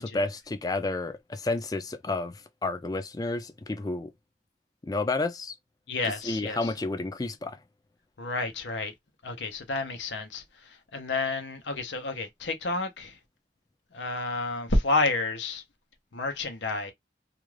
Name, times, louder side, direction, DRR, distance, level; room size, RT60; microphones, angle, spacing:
voice 1, 0.0-4.1 4.8-5.5 6.2-7.6, left 2 dB, 20° left, 0.4 m, -31 dB
voice 2, 5.9-6.7 8.2-8.9 9.2-10.4 10.9-13.2 13.9-15.6 16.1-16.9, left 2 dB, 85° left, 0.7 m, -30 dB
2.4 x 2.3 x 3.1 m
head